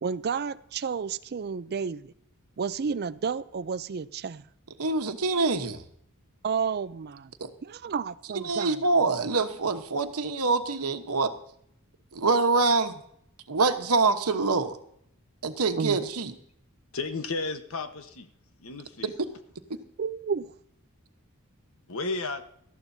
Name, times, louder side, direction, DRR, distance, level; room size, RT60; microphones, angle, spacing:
voice 1, 0.0-2.1 2.6-4.4 6.4-7.3 7.6-8.8 15.8-16.0 20.0-20.5, right 6 dB, 45° right, 17 dB, 0.4 m, -31 dB
voice 2, 4.8-5.8 7.4-7.5 8.3-11.3 12.1-12.9 13.5-14.8 15.4-16.3 19.0-19.1, right 3 dB, 85° right, 8 dB, 1.1 m, -25 dB
voice 3, 16.9-18.3 18.6-19.1 21.9-22.4, left 3 dB, 65° left, 8 dB, 1.2 m, -33 dB
19.0 x 13.5 x 2.7 m, 0.70 s
head